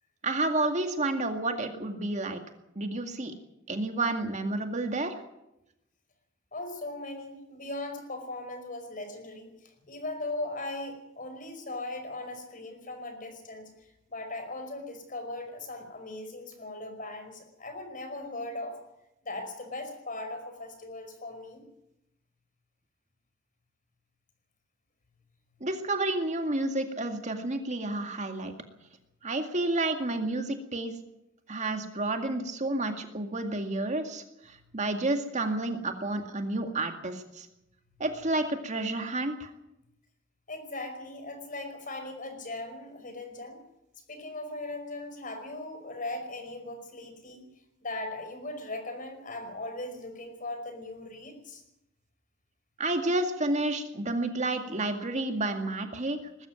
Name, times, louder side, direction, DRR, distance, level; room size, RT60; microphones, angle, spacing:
voice 1, 0.2-2.4 2.8-3.3 3.7-5.2 25.6-28.5 29.2-30.9 31.5-37.5 38.0-39.5 52.8-56.5, right 2 dB, 40° right, 6 dB, 2.1 m, -30 dB
voice 2, 6.5-18.8 19.2-21.7 40.5-43.6 44.1-47.4 47.8-51.6, left 2 dB, 45° left, 7 dB, 5.2 m, -39 dB
20.5 x 13.5 x 9.3 m, 0.86 s
head